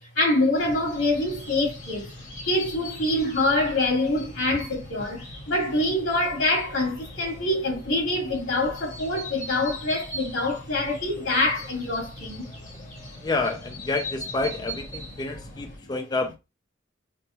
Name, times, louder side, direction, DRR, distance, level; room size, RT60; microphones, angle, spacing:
voice 1, 0.2-2.0 2.5-5.2 5.5-12.4, left 2 dB, 85° left, 2.6 m, -25 dB
sound 1, 0.5-15.8, equal, 40° left, 1.5 m, -40 dB
voice 2, 13.2-16.3, left 3 dB, 20° left, 0.4 m, -29 dB
5.9 x 2.2 x 2.6 m
head